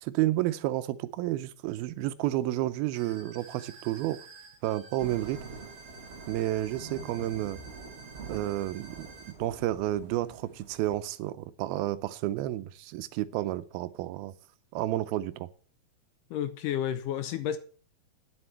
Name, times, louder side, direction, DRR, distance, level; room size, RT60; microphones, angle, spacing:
voice 1, 0.0-4.2 4.6-5.4 6.3-7.6 8.3-9.1 9.4-14.3 14.7-15.5, right 15 dB, 90° right, 2.6 m, -31 dB
sound 1, 2.9-9.3, right 4 dB, 35° right, 2.2 m, -51 dB
Thunder / Rain, 5.0-11.0, right 4 dB, 75° right, 0.6 m, -46 dB
voice 2, 16.3-17.6, left 10 dB, 75° left, 2.1 m, -31 dB
9.7 x 7.9 x 7.1 m
omnidirectional pair, 4.3 m